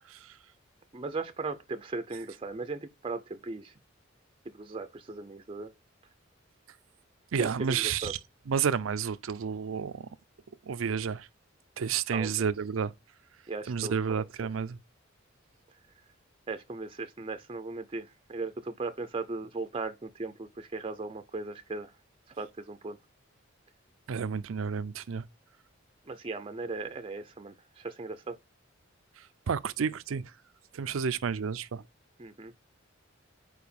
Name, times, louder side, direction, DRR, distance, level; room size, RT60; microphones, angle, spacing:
voice 1, 0.9-3.7 4.5-5.7 7.4-8.1 12.1-12.5 13.5-14.5 16.5-21.9 22.4-23.0 26.1-28.4 32.2-32.5, right 3 dB, 25° right, 0.5 m, -38 dB
voice 2, 7.3-8.2 8.5-10.1 10.7-11.3 11.8-12.9 13.7-14.8 24.1-25.2 29.5-30.3 30.7-31.8, right 6 dB, 85° right, 0.5 m, -30 dB
4.8 x 4.6 x 5.1 m
head